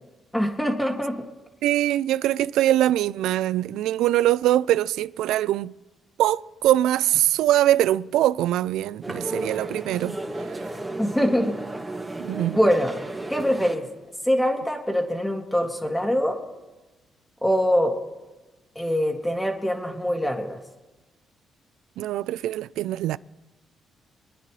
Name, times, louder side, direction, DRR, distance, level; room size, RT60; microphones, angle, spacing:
voice 1, 0.3-1.2 11.0-11.6 12.6-13.0 13.3-13.9 14.3-16.4 17.4-17.9 18.8-20.6, equal, 5° left, 2.1 m, -23 dB
voice 2, 1.6-5.7 6.2-10.2 12.2-12.6 22.0-23.2, right 13 dB, 85° right, 0.3 m, -22 dB
sound 1, 9.0-13.8, right 2 dB, 20° right, 2.0 m, -33 dB
27.0 x 10.0 x 3.1 m
cardioid pair, 90°, 0 cm